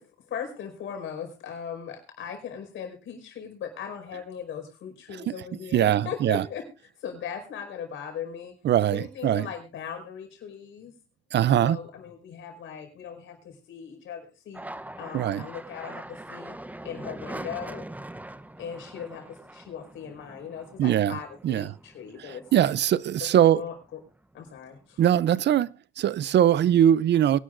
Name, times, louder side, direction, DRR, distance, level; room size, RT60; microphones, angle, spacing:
voice 1, 0.0-6.6 7.0-8.5 8.9-10.9 11.6-14.7 15.0-16.6 16.8-17.9 18.6-22.7 23.2-24.0 24.3-25.0, left 8 dB, 80° left, 5.1 m, -38 dB
voice 2, 5.7-6.4 8.6-9.5 11.3-11.8 15.1-15.5 20.8-21.2 21.4-21.7 22.5-23.6 25.0-27.4, right 11 dB, 60° right, 0.6 m, -21 dB
sound 1, 14.5-23.3 23.7-24.4 24.7-25.6, right 1 dB, 10° right, 0.8 m, -43 dB
23.0 x 11.5 x 2.6 m
cardioid pair, 90°, 20 cm